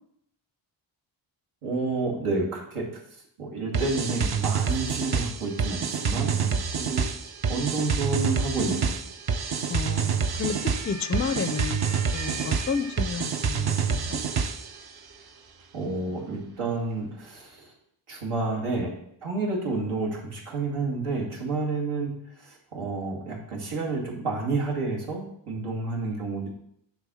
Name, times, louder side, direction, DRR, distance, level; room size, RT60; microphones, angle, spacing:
voice 1, 1.6-2.8 3.4-7.0 7.5-8.9 15.7-17.7 18.1-18.9 19.2-22.1 22.4-26.5, right 3 dB, 90° right, -3 dB, 2.4 m, -30 dB
sound 1, 3.7-14.8, right 6 dB, 50° right, 0.7 m, -27 dB
sound 2, 6.3-17.5, right 4 dB, 65° right, 1.9 m, -47 dB
voice 2, 9.7-11.8 12.1-14.2, left 5 dB, 30° left, 10 dB, 0.4 m, -31 dB
10.0 x 3.5 x 6.3 m, 0.73 s
wide cardioid pair, 150°, 50 cm